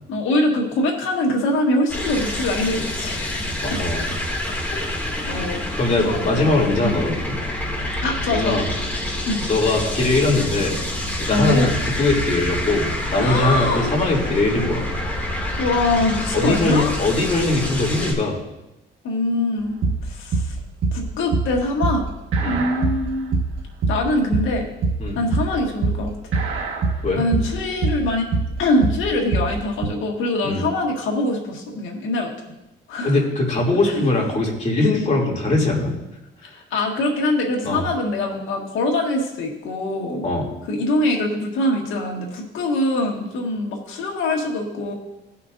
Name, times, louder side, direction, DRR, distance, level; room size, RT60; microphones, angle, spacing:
voice 1, 0.1-3.8 4.7-5.6 6.0-6.4 6.8-7.0 8.0-8.6 9.3-9.5 11.3-11.8 13.2-13.9 15.6-16.9 19.0-20.6 20.9-22.0 22.5-23.4 23.9-24.7 25.2-26.1 27.2-28.3 28.6-32.3 32.9-33.2 33.9-34.0 36.4-40.2 40.7-44.9, left 2 dB, 85° left, 0 dB, 1.8 m, -23 dB
sound 1, 1.9-18.1, left 1 dB, 10° left, 2.4 m, -27 dB
voice 2, 3.6-4.2 5.8-7.3 8.3-8.7 9.5-10.8 11.2-14.9 16.3-18.4 22.4-22.6 25.0-25.2 27.0-27.2 30.4-30.6 33.0-35.9 37.6-37.8 40.2-40.5, left 2 dB, 35° left, -3 dB, 2.8 m, -21 dB
sound 2, 19.6-29.9, right 3 dB, 75° right, 1.5 m, -23 dB
17.0 x 5.7 x 2.6 m, 0.95 s
cardioid pair, 90°, 20 cm